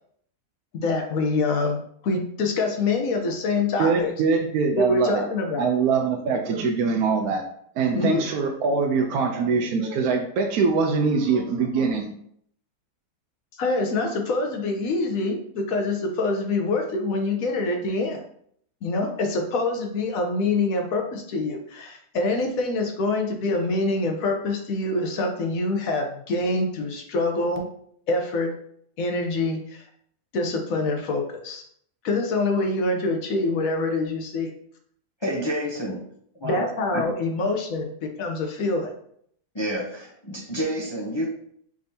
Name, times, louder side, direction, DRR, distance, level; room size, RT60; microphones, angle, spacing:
voice 1, 0.7-4.1 4.8-5.7 7.9-8.2 13.6-18.2 18.8-27.7 28.1-28.5 29.0-29.8 30.3-31.6 32.0-34.5 36.4-38.9, left 3 dB, 65° left, 3 dB, 1.1 m, -25 dB
voice 2, 3.8-5.2 5.6-7.4 7.8-12.1, right 4 dB, 75° right, 1 dB, 1.0 m, -23 dB
voice 3, 35.2-36.0 36.4-36.6 36.9-37.1 39.5-41.3, equal, 35° left, -4 dB, 0.4 m, -29 dB
5.0 x 3.5 x 2.7 m, 0.66 s
omnidirectional pair, 1.6 m